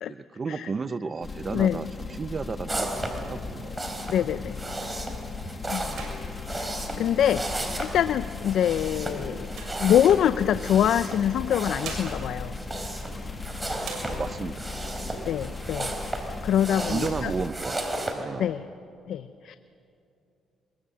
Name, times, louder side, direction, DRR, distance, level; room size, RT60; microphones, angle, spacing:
voice 1, 0.1-3.9 5.5-5.7 14.0-15.6 16.8-18.5, right 4 dB, 35° right, 14 dB, 0.9 m, -34 dB
sound 1, 1.2-17.5, left 4 dB, 30° left, 1.9 m, -38 dB
sound 2, 2.7-18.1, right 1 dB, 20° right, 3.8 m, -35 dB
sound 3, 3.5-4.7 5.2-5.4 5.8-7.7 8.4-10.5 11.4-13.4 13.8-14.6 15.1-15.2 15.5-16.1 16.6-17.5, right 4 dB, 70° right, 6.8 m, -45 dB
voice 2, 4.1-4.6 5.7-6.0 6.5-6.7 7.0-7.4 7.8-9.5 9.8-12.6 15.2-17.3 18.4-18.6 19.1-19.6, left 10 dB, 75° left, 12 dB, 0.6 m, -24 dB
23.0 x 22.0 x 8.5 m, 2.6 s
cardioid pair, 90°, 0 cm